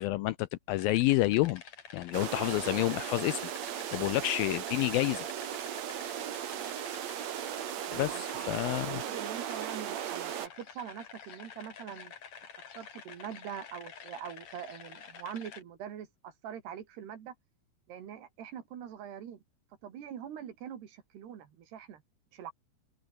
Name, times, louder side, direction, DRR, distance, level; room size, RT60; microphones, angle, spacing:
voice 1, 0.0-1.6 1.9-3.5 3.9-5.3 7.9-9.0, left 17 dB, 85° left, 2.2 m, -29 dB
sound 1, 0.7-15.6, left 7 dB, 45° left, 3.6 m, -50 dB
sound 2, 2.1-10.5, right 10 dB, 55° right, 2.1 m, -37 dB
voice 2, 4.0-4.3 7.9-12.1 12.8-17.3 17.9-19.4 19.8-22.0 22.3-22.5, right 9 dB, 80° right, 4.7 m, -44 dB
omnidirectional pair, 4.7 m